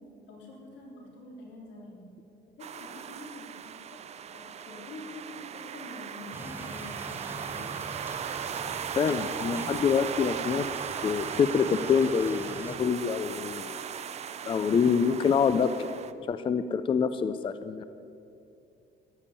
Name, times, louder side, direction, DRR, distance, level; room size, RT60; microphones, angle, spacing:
voice 1, 0.3-2.1 2.5-7.8, left 2 dB, 80° left, -2 dB, 3.9 m, -46 dB
sound 1, 2.6-16.1, right 8 dB, 35° right, 0.5 m, -38 dB
sound 2, 6.3-12.8, right 2 dB, 10° right, 0.9 m, -43 dB
voice 2, 9.0-10.7 11.0-13.7 14.5-15.9 16.3-17.8, left 6 dB, 25° left, 12 dB, 0.4 m, -26 dB
14.0 x 7.2 x 10.0 m, 2.6 s
cardioid pair, 140°, 19 cm